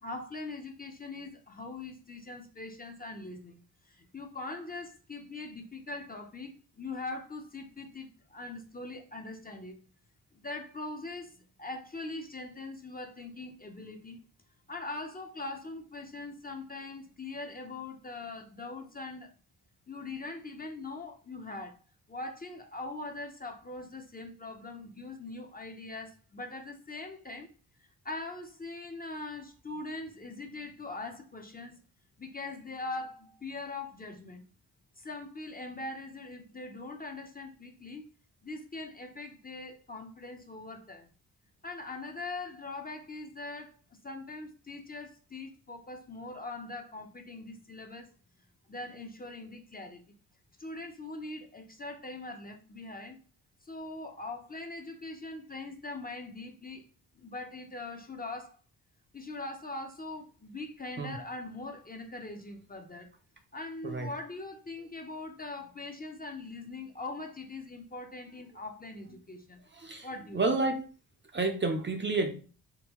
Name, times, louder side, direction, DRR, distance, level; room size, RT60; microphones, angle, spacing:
voice 1, 0.0-3.6 3.8-9.7 10.3-14.2 14.7-19.3 19.9-21.8 22.1-27.5 28.0-31.8 32.2-34.4 35.0-38.0 38.4-41.1 41.6-43.8 44.0-48.1 48.7-50.1 50.6-53.2 53.6-56.8 57.1-58.6 59.1-63.1 63.5-69.6 70.0-70.4, left 2 dB, 20° left, 0.6 m, -42 dB
voice 2, 69.7-70.1 70.3-70.8 71.3-72.3, right 3 dB, 30° right, 0.6 m, -29 dB
3.7 x 2.2 x 2.9 m
cardioid pair, 65°, 40 cm